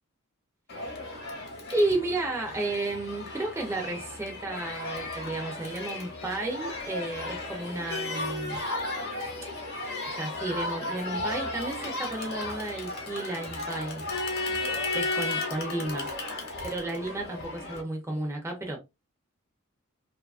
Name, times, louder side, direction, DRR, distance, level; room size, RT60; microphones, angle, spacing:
Crowd, 0.7-17.8, left 2 dB, 50° left, 0.9 m, -34 dB
voice 1, 1.7-8.6 10.2-14.0 14.9-16.1 16.6-18.8, right 2 dB, 10° right, 0.5 m, -32 dB
2.7 x 2.3 x 2.3 m
head